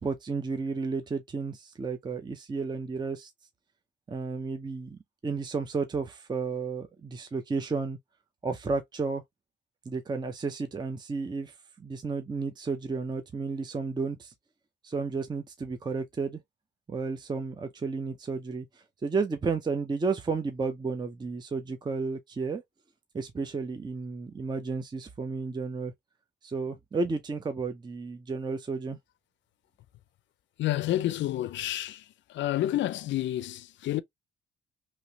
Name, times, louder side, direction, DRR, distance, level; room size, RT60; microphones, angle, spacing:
voice 1, 0.0-3.3 4.1-8.0 8.4-9.2 9.9-14.3 14.8-16.4 16.9-22.6 23.1-25.9 26.4-29.0, right 4 dB, 20° right, 0.5 m, -32 dB
voice 2, 30.6-32.0 32.3-34.0, left 14 dB, 70° left, 0.4 m, -29 dB
3.0 x 2.9 x 2.7 m
cardioid pair, 90°, 20 cm